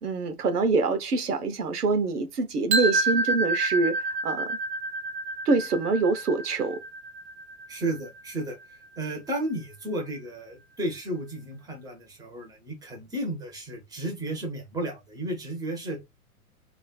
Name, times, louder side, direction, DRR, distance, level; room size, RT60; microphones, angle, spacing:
voice 1, 0.0-4.6 5.5-6.8, right 3 dB, 85° right, 0.7 m, -25 dB
sound 1, 2.7-8.6, right 2 dB, 45° right, 0.8 m, -29 dB
voice 2, 7.7-16.0, right 1 dB, 10° right, 0.9 m, -33 dB
3.1 x 2.4 x 2.2 m
figure-of-eight pair, 110°, 45 cm